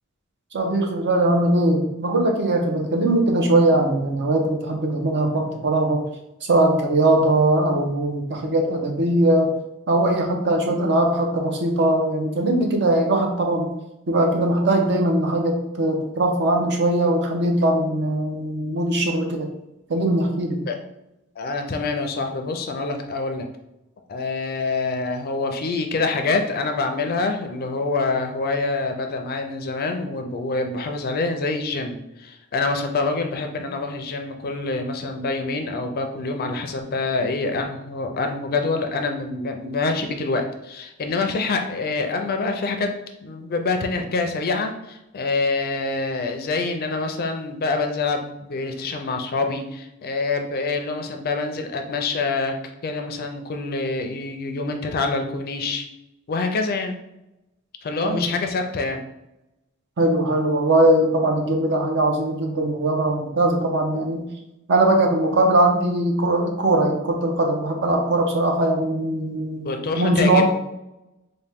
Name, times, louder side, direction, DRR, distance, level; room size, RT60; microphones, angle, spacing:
voice 1, 0.5-6.0 6.4-9.5 9.9-13.7 14.1-19.5 19.9-20.6 58.0-58.3 60.0-64.2 64.7-70.4, right 1 dB, 55° right, 2 dB, 0.7 m, -20 dB
voice 2, 21.4-23.5 24.1-42.9 43.2-52.5 52.8-55.8 56.3-57.0 57.8-59.0 69.6-70.4, left 3 dB, 45° left, 5 dB, 0.4 m, -26 dB
4.2 x 2.2 x 3.4 m, 0.90 s
head